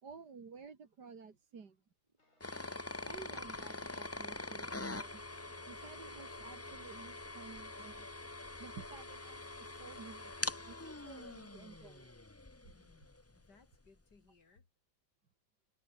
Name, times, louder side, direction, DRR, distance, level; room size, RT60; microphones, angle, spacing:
voice 1, 0.0-1.8 3.0-5.2 5.7-8.1 8.6-10.3 10.6-12.1, right 5 dB, 75° right, 2.9 m, -53 dB
sound 1, 2.1-7.1, right 3 dB, 20° right, 1.6 m, -63 dB
sound 2, 2.2-13.4, left 2 dB, 40° left, 5.5 m, -78 dB
sound 3, 2.4-13.2, left 2 dB, 20° left, 0.4 m, -44 dB
voice 2, 12.7-14.7, left 4 dB, 75° left, 3.9 m, -66 dB
omnidirectional pair, 1.8 m